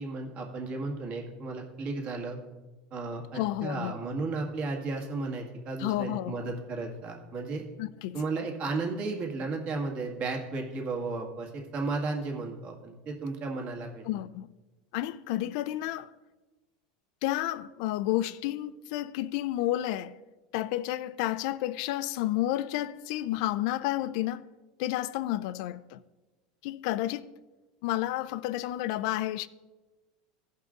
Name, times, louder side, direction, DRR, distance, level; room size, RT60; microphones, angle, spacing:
voice 1, 0.0-2.4 2.9-7.6 8.1-14.0, right 3 dB, 40° right, 1.8 m, -34 dB
voice 2, 3.3-3.9 5.8-6.3 7.8-8.2 14.0-14.5 14.9-16.1 17.2-20.2 20.5-24.5 24.8-26.0 26.6-27.3 27.8-29.5, left 14 dB, 65° left, 0.4 m, -31 dB
16.0 x 5.4 x 3.8 m
supercardioid pair, 135°, 4 cm